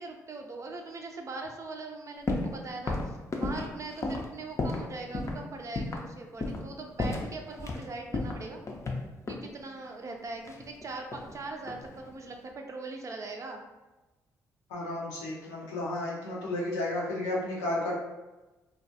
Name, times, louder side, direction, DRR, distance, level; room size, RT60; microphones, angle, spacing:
voice 1, 0.0-8.6 9.3-13.6 16.3-16.5, right 3 dB, 40° right, 2 dB, 0.4 m, -41 dB
sound 1, 2.3-2.6 2.9-4.9 5.1-5.4 5.8-6.1 6.4-6.7 7.0-7.8 8.1-9.5 10.4-11.4 11.6-12.1, left 2 dB, 40° left, 0.5 m, -33 dB
voice 2, 14.7-17.9, left 1 dB, 90° left, -4 dB, 0.5 m, -32 dB
2.2 x 2.1 x 2.7 m, 1.1 s
hypercardioid pair, 45°, 8 cm